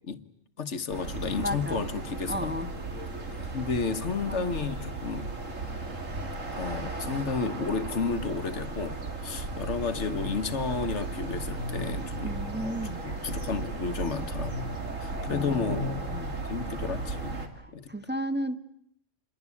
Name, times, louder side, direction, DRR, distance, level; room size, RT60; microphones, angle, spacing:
voice 1, 0.6-2.5 3.5-5.3 6.5-14.6 15.0-15.9 16.5-17.9, left 5 dB, 65° left, 10 dB, 1.6 m, -32 dB
sound 1, 0.9-17.5, right 2 dB, 85° right, 3.1 m, -35 dB
voice 2, 1.4-1.8 2.3-2.7 4.3-4.5 12.2-13.1 15.0-16.4 17.5-18.6, equal, 10° right, 9 dB, 1.2 m, -34 dB
28.0 x 22.0 x 8.5 m, 0.73 s
omnidirectional pair, 1.3 m